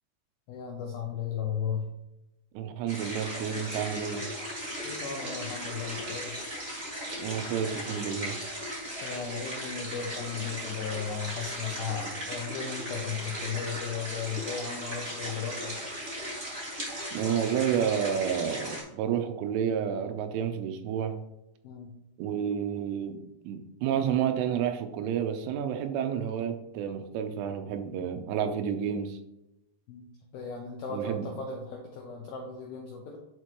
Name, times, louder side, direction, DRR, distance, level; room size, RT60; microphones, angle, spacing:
voice 1, 0.5-1.9 4.8-6.5 9.0-15.9 21.6-21.9 29.9-30.0 30.3-33.2, left 6 dB, 80° left, -1 dB, 2.1 m, -36 dB
voice 2, 2.5-4.4 7.2-8.4 17.1-21.1 22.2-29.2 30.9-31.3, right 8 dB, 85° right, 7 dB, 3.2 m, -30 dB
sound 1, 2.9-18.8, equal, 55° right, 0.6 m, -37 dB
11.0 x 4.6 x 3.0 m, 0.90 s
omnidirectional pair, 5.5 m